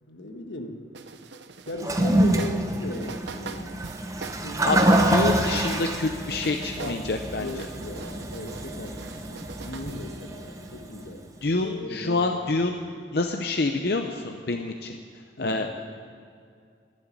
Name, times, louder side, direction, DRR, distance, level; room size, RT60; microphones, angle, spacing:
voice 1, 0.0-0.9 1.7-3.8 4.4-4.9 6.8-7.0 7.4-11.3 11.6-12.8 15.4-15.7, left 1 dB, 85° left, 5 dB, 1.4 m, -38 dB
sound 1, 0.9-5.9 6.2-10.8, right 4 dB, 80° right, 0.7 m, -42 dB
Toilet flush, 1.7-11.0, right 1 dB, 20° right, 0.8 m, -26 dB
voice 2, 5.1-7.5 11.4-12.8 13.1-15.0 15.4-15.7, left 3 dB, 60° left, 4 dB, 0.7 m, -27 dB
11.5 x 9.1 x 9.8 m, 2.2 s
head